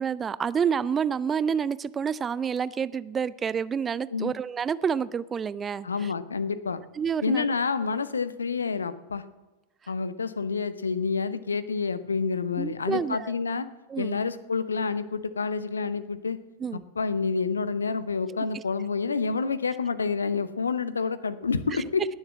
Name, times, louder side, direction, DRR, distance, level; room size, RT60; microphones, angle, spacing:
voice 1, 0.0-6.1 6.9-7.5 12.6-13.3 13.9-14.2 16.6-16.8 18.5-18.6 21.7-21.8, right 7 dB, 20° right, 18 dB, 0.4 m, -28 dB
voice 2, 5.8-6.8 7.2-9.2 9.9-13.7 14.0-16.4 16.7-22.1, left 5 dB, 75° left, 15 dB, 0.7 m, -28 dB
19.5 x 7.3 x 7.5 m, 1.1 s
figure-of-eight pair, 90°, 0 cm